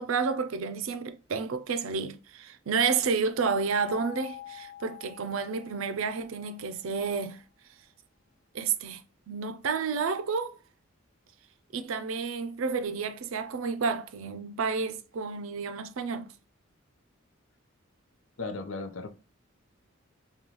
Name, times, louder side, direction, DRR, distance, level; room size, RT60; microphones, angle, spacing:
voice 1, 0.0-7.4 8.5-10.6 11.7-16.3, right 5 dB, 75° right, 0.5 m, -30 dB
sound 1, 3.8-6.8, left 11 dB, 40° left, 1.4 m, -46 dB
voice 2, 18.4-19.1, left 3 dB, 65° left, 0.6 m, -36 dB
5.2 x 2.3 x 3.0 m
head